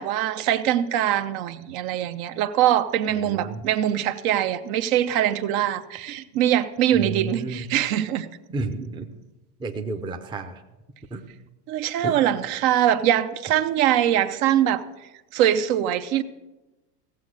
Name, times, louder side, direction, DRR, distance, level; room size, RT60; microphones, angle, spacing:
voice 1, 0.0-8.3 11.7-14.8 15.3-16.2, right 11 dB, 60° right, 0.9 m, -23 dB
voice 2, 3.1-3.6 6.9-7.6 8.5-9.1 9.6-10.6 11.1-11.2 12.0-12.2, right 3 dB, 10° right, 0.6 m, -31 dB
16.0 x 7.4 x 6.3 m
supercardioid pair, 130°, 49 cm